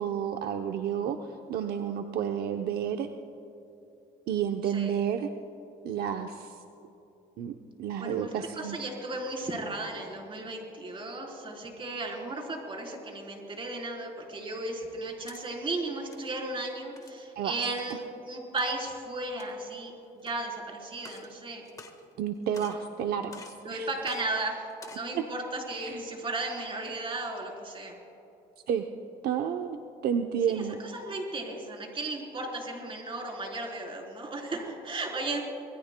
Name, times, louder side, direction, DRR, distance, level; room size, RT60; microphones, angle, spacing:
voice 1, 0.0-3.1 4.3-5.3 5.8-6.6 7.4-8.8 17.4-17.5 22.2-23.9 25.1-25.2 25.8-26.0 28.7-28.9 29.2-29.8 30.0-30.8, right 8 dB, 70° right, 5 dB, 0.7 m, -31 dB
voice 2, 8.0-21.6 23.6-24.7 24.9-28.0 30.5-35.4, right 2 dB, 30° right, 0 dB, 3.7 m, -35 dB
sound 1, 15.0-15.4 16.0-16.3 17.0-17.2 17.8-18.0 18.6-18.7 19.3-19.7 20.2-20.3 20.9-21.3 21.6-22.3 22.5-22.9 23.3-23.6 24.0-24.2 24.7-25.1, left 3 dB, 20° left, 1.5 m, -49 dB
26.0 x 20.5 x 2.2 m, 2.9 s
cardioid pair, 110°, 17 cm